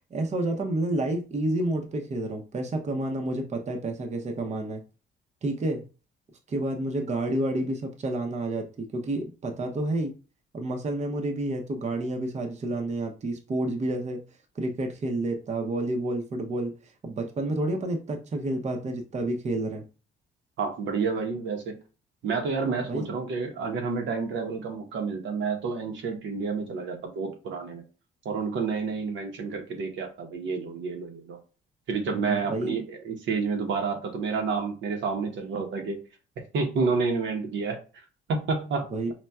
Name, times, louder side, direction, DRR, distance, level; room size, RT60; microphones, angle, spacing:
voice 1, 0.1-4.8 5.4-5.8 6.5-10.1 10.5-14.2 14.6-16.7 17.0-19.8 22.8-23.1 32.1-32.7 38.9-39.1, right 1 dB, 35° right, 3 dB, 0.6 m, -29 dB
voice 2, 20.6-21.8 22.2-27.8 28.2-31.4 31.9-36.0 36.5-37.8 38.3-38.9, right 4 dB, 70° right, 4 dB, 0.8 m, -29 dB
4.1 x 2.2 x 2.3 m, 0.34 s
cardioid pair, 90°, 20 cm